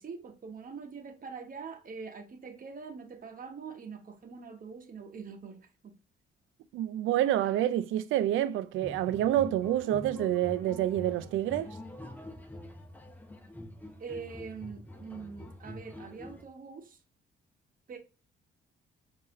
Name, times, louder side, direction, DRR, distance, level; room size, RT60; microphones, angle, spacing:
voice 1, 0.0-5.9 14.0-17.0 17.9-18.0, right 5 dB, 45° right, 1.1 m, -44 dB
voice 2, 6.7-11.7, right 12 dB, 80° right, 0.4 m, -28 dB
sound 1, 8.7-16.4, left 1 dB, 10° left, 0.7 m, -45 dB
4.7 x 2.8 x 2.9 m
cardioid pair, 90°, 20 cm